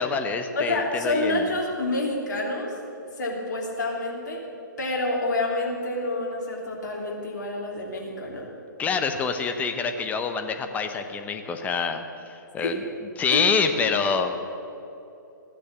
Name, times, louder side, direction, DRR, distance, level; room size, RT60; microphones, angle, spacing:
voice 1, 0.0-1.5 8.8-12.8 13.2-14.3, left 5 dB, 15° left, 7 dB, 0.9 m, -26 dB
voice 2, 0.5-2.8 3.2-4.4 4.8-8.5 12.6-12.8 13.3-13.4, left 2 dB, 60° left, -2 dB, 3.2 m, -28 dB
14.5 x 10.0 x 7.4 m, 2.8 s
figure-of-eight pair, 120°, 11 cm